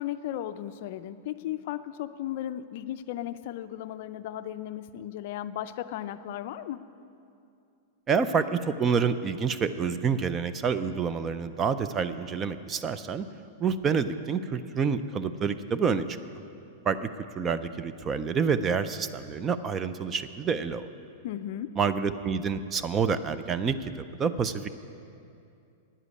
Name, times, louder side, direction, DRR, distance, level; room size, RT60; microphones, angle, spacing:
voice 1, 0.0-6.8 21.2-21.7, left 12 dB, 50° left, 12 dB, 0.4 m, -35 dB
voice 2, 8.1-13.3 13.6-16.0 16.9-17.1 17.4-20.9 21.8-23.9 24.2-24.7, right 6 dB, 20° right, 12 dB, 0.4 m, -28 dB
9.9 x 8.2 x 9.5 m, 2.6 s
supercardioid pair, 160°, 0 cm